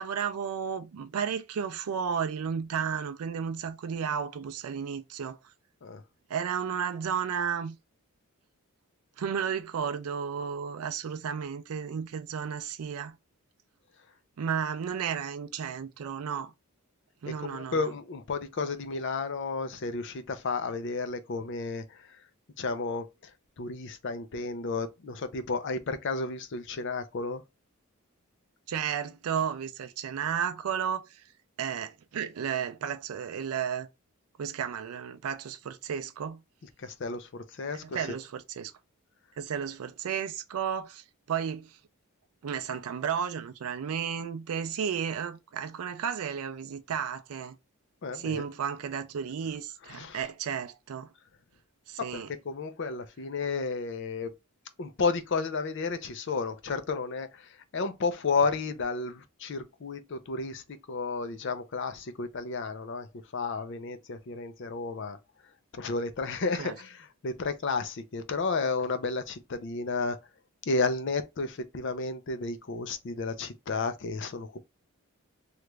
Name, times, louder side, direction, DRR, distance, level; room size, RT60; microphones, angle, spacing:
voice 1, 0.0-5.4 6.3-7.8 9.2-13.2 14.4-16.5 17.2-17.9 28.7-31.2 31.6-33.9 34.4-36.4 37.8-38.7 39.4-41.8 42.4-47.6 48.1-51.1 51.9-52.3 66.6-66.7, right 7 dB, 80° right, 0.4 m, -33 dB
voice 2, 17.3-22.2 22.6-23.3 23.6-27.4 36.8-38.1 48.0-48.4 49.9-50.2 52.0-54.3 54.8-63.1 63.3-65.2 65.7-70.2 70.7-74.6, left 4 dB, 55° left, 0.5 m, -32 dB
3.0 x 2.4 x 3.2 m
head